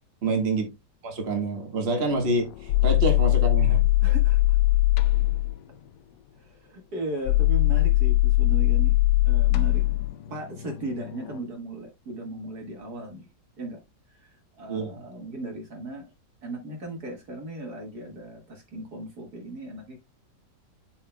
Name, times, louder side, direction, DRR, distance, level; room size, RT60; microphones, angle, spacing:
voice 1, 0.2-0.7 1.0-3.8 14.7-15.0, right 2 dB, 35° right, 1.9 m, -27 dB
sound 1, 2.1-5.6 7.2-11.4, left 18 dB, 75° left, 1.1 m, -21 dB
voice 2, 4.0-4.6 6.3-9.0 9.3-9.8 10.3-13.3 13.6-13.8 14.1-16.1 16.4-20.0, right 2 dB, 60° right, 2.2 m, -37 dB
12.0 x 4.7 x 2.2 m
omnidirectional pair, 2.0 m